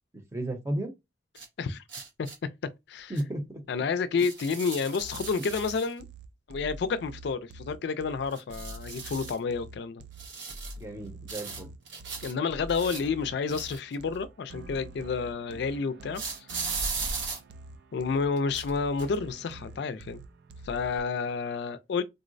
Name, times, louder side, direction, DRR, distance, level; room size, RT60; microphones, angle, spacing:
voice 1, 0.1-0.9 3.1-3.6 10.8-11.7, right 1 dB, 15° right, 0.7 m, -34 dB
sound 1, 1.3-1.5 1.9-2.3 3.1-3.2 4.2-5.9 8.3-9.4 10.2-10.8 11.3-12.3 12.7-14.2 16.1-17.4 18.4-18.7 19.0-19.1, right 4 dB, 85° right, 0.8 m, -37 dB
voice 2, 3.7-6.1 6.5-10.0 12.2-16.2 17.9-20.2 20.6-22.0, left 5 dB, 65° left, 0.4 m, -30 dB
sound 2, 5.0-21.0, right 2 dB, 65° right, 0.4 m, -46 dB
3.8 x 2.0 x 2.5 m
head